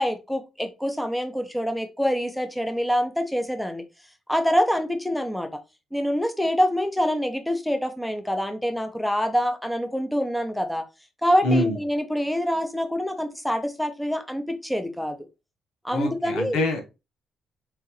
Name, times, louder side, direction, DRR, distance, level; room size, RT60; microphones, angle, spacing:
voice 1, 0.0-3.8 4.3-5.5 5.9-10.8 11.2-15.1 15.8-16.6, equal, 5° left, 0.8 m, -25 dB
voice 2, 11.4-11.8 15.9-16.8, left 1 dB, 85° left, 1.3 m, -24 dB
3.9 x 3.5 x 3.2 m
cardioid pair, 90°, 0 cm